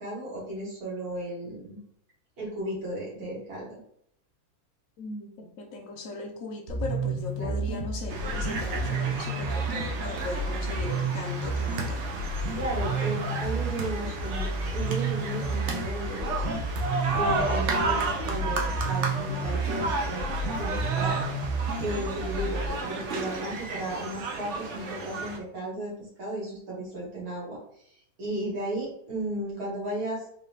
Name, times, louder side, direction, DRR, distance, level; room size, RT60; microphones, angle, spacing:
voice 1, 0.0-1.8 2.4-3.8 7.4-7.6 12.6-16.6 17.2-21.2 21.8-25.9 26.2-30.3, right 1 dB, 75° right, -5 dB, 2.1 m, -35 dB
voice 2, 5.0-12.1, left 3 dB, 65° left, 3 dB, 0.9 m, -38 dB
sound 1, 6.7-22.7, right 2 dB, 90° right, 1.3 m, -31 dB
sound 2, 8.1-25.4, right 3 dB, 60° right, 0.8 m, -33 dB
3.8 x 2.9 x 3.3 m, 0.70 s
omnidirectional pair, 1.6 m